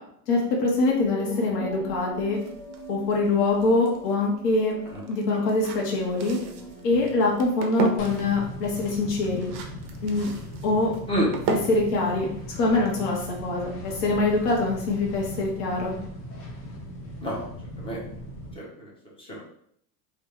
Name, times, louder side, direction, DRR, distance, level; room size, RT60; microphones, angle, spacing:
voice 1, 0.3-2.4 2.9-4.7 5.1-6.4 6.8-9.5 10.0-10.3 10.6-10.9 11.5-12.3 12.6-15.9, left 3 dB, 70° left, -2 dB, 1.4 m, -24 dB
sound 1, 0.7-8.4, equal, 30° left, 1.4 m, -42 dB
sound 2, 2.3-13.2, right 4 dB, 45° right, 0.5 m, -36 dB
sound 3, 8.0-18.6, equal, 90° left, 1.2 m, -39 dB
voice 2, 18.6-18.9 19.2-19.4, equal, 10° left, -4 dB, 0.5 m, -28 dB
3.2 x 2.4 x 3.1 m, 0.68 s
supercardioid pair, 140°, 49 cm